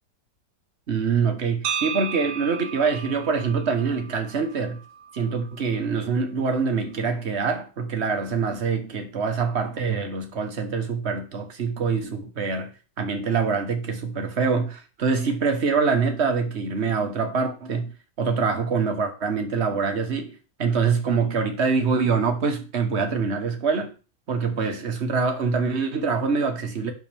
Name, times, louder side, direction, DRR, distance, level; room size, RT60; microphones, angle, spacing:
voice 1, 0.9-4.8 5.1-12.7 13.0-17.9 18.2-23.9 24.3-26.9, right 5 dB, 40° right, 1.5 m, -25 dB
sound 1, 1.6-5.7, right 8 dB, 60° right, 0.9 m, -34 dB
11.5 x 5.8 x 3.5 m
omnidirectional pair, 1.9 m